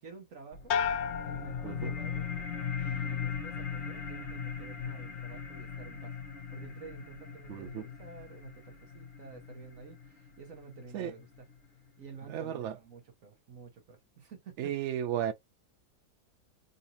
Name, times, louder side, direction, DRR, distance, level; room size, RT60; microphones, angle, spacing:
voice 1, 0.0-0.8 1.2-2.3 2.7-11.5 12.0-15.0, right 5 dB, 60° right, 1.2 m, -50 dB
sound 1, 0.5-11.5, left 7 dB, 45° left, 1.3 m, -39 dB
sound 2, 0.7-2.4 2.8-3.4, left 7 dB, 65° left, 0.8 m, -35 dB
voice 2, 7.5-7.8 10.9-11.1 12.3-12.8 14.6-15.3, right 10 dB, 75° right, 0.6 m, -34 dB
3.9 x 2.6 x 2.8 m
omnidirectional pair, 1.7 m